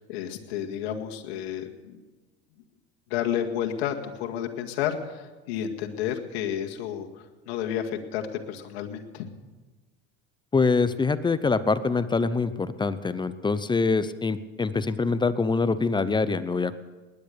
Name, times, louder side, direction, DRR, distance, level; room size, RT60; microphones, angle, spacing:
voice 1, 0.0-2.0 3.1-7.1 7.5-8.2 8.5-9.3, left 9 dB, 75° left, 3 dB, 2.0 m, -31 dB
voice 2, 10.5-16.8, left 4 dB, 15° left, 14 dB, 0.7 m, -24 dB
20.0 x 10.5 x 6.8 m, 1.3 s
supercardioid pair, 105°, 32 cm